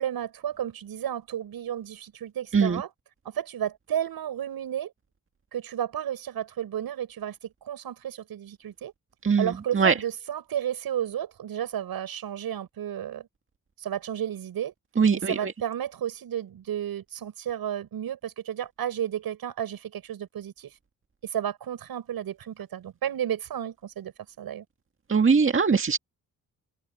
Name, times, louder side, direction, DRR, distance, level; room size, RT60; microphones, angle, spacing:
voice 1, 0.0-2.9 3.2-4.9 5.5-7.4 7.6-8.9 9.4-13.3 13.8-14.7 15.1-20.7 21.2-24.1 24.4-24.6, right 10 dB, 85° right, 6.9 m, -32 dB
voice 2, 15.0-15.3 25.1-26.0, right 5 dB, 35° right, 1.9 m, -21 dB
open air
cardioid pair, 95°, 35 cm